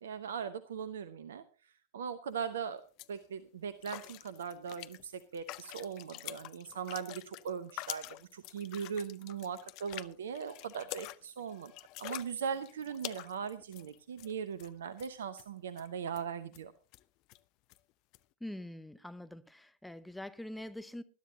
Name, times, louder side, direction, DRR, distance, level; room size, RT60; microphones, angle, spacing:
voice 1, 0.0-2.8 3.1-11.7 12.0-16.7, right 7 dB, 65° right, 0.8 m, -40 dB
sound 1, 2.3-2.5 2.8-3.2 3.8-14.3 14.6-14.7 15.0-15.4 15.8-15.9 16.1-16.2 16.5-16.6 16.9-17.0 17.3-17.4 17.7-17.8 18.1-18.2, left 18 dB, 40° left, 0.7 m, -46 dB
voice 2, 18.4-21.0, left 1 dB, 5° left, 0.7 m, -44 dB
20.5 x 12.0 x 2.8 m
figure-of-eight pair, 90°, 0 cm